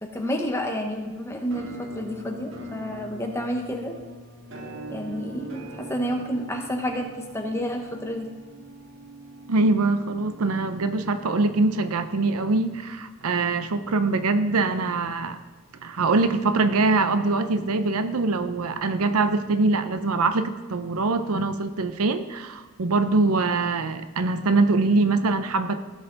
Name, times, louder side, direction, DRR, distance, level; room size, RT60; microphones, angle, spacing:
voice 1, 0.0-3.9 4.9-8.3, equal, 10° left, 2 dB, 1.0 m, -30 dB
Musical instrument, 1.5-11.3, equal, 55° right, 1.5 m, -42 dB
voice 2, 9.5-15.4 15.8-25.8, right 3 dB, 75° right, 10 dB, 0.6 m, -23 dB
16.5 x 5.7 x 4.0 m, 1.3 s
head